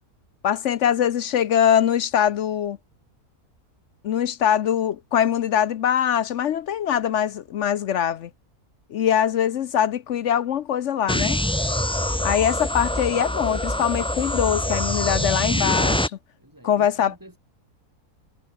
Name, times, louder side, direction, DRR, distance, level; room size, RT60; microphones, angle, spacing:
voice 1, 0.4-2.8 4.0-8.3 8.9-11.4 12.2-16.1 16.6-17.1, left 9 dB, 60° left, 0.8 m, -22 dB
sound 1, 11.1-16.1, left 1 dB, 5° left, 0.4 m, -24 dB
voice 2, 16.4-17.4, right 1 dB, 10° right, 2.8 m, -48 dB
omnidirectional pair, 1.6 m